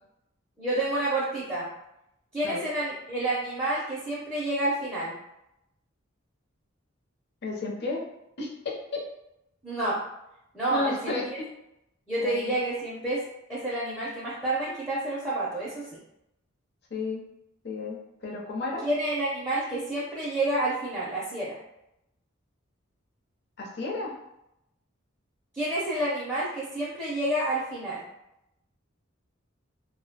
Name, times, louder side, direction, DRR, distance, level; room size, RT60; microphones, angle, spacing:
voice 1, 0.6-1.7 2.3-5.2 9.6-10.0 10.5-11.2 12.1-13.2 13.5-15.9 18.8-21.6 25.5-28.0, right 1 dB, 10° right, -8 dB, 0.5 m, -29 dB
voice 2, 7.4-8.0 8.4-8.7 10.7-11.5 12.2-12.5 16.9-17.2 17.6-18.8 23.6-24.1, left 3 dB, 55° left, -1 dB, 0.5 m, -32 dB
2.3 x 2.1 x 2.7 m, 0.84 s
head